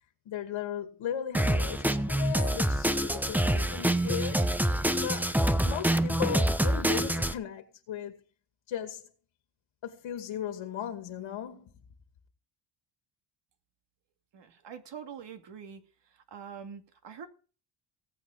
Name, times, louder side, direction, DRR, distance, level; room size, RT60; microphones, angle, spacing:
voice 1, 0.3-4.5 5.0-8.2 8.7-9.1 9.8-11.7, left 9 dB, 70° left, 2.4 m, -37 dB
Drum kit, 1.3-7.3, right 1 dB, 5° right, 1.0 m, -26 dB
voice 2, 14.3-15.8 16.1-17.3, right 7 dB, 60° right, 2.5 m, -44 dB
18.0 x 8.5 x 5.0 m
cardioid pair, 85°, 49 cm